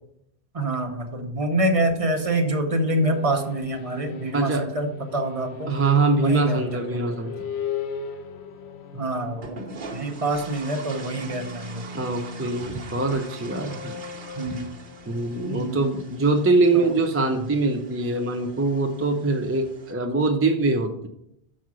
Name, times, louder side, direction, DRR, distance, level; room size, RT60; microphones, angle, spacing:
voice 1, 0.5-5.8 6.2-7.1 8.9-9.6 9.9-11.8 14.3-14.7 15.4-15.8 16.7-16.9, right 1 dB, 35° right, 4 dB, 0.8 m, -26 dB
sound 1, 1.9-16.6, left 6 dB, 85° left, 0.9 m, -39 dB
voice 2, 4.3-4.6 5.7-7.3 11.9-14.0 15.1-21.1, right 3 dB, 20° right, 4 dB, 0.4 m, -23 dB
sound 2, 9.4-19.9, right 4 dB, 55° right, 1.1 m, -43 dB
6.3 x 4.7 x 6.1 m, 0.77 s
omnidirectional pair, 1.1 m